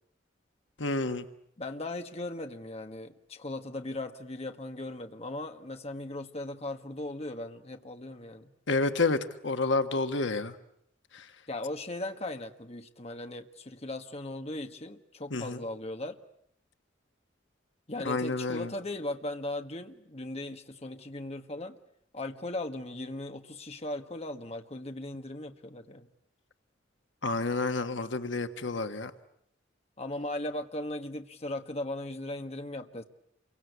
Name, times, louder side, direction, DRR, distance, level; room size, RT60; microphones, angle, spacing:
voice 1, 0.8-1.3 8.7-10.5 11.1-11.2 15.3-15.6 18.0-18.7 27.2-29.1, left 3 dB, 75° left, 9 dB, 1.5 m, -29 dB
voice 2, 1.6-8.5 11.5-16.2 17.9-21.8 22.1-26.1 30.0-33.0, left 1 dB, 35° left, 6 dB, 1.6 m, -38 dB
28.5 x 24.0 x 8.2 m, 0.73 s
head